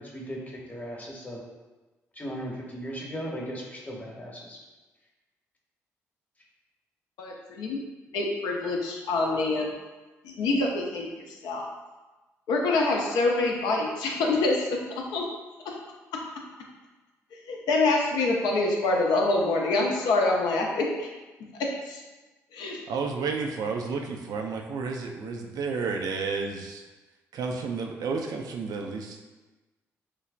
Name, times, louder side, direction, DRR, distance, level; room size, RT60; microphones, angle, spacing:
voice 1, 0.0-1.4 2.2-4.6, equal, 20° left, -3 dB, 0.9 m, -37 dB
voice 2, 7.2-7.8 8.1-9.7 10.2-11.7 12.5-15.2 17.5-21.1 21.6-22.0 22.5-22.8, left 2 dB, 70° left, 0 dB, 0.4 m, -26 dB
voice 3, 22.9-26.8 27.3-29.2, right 4 dB, 60° right, 3 dB, 0.3 m, -31 dB
3.2 x 2.1 x 2.4 m, 1.2 s
hypercardioid pair, 45°, 7 cm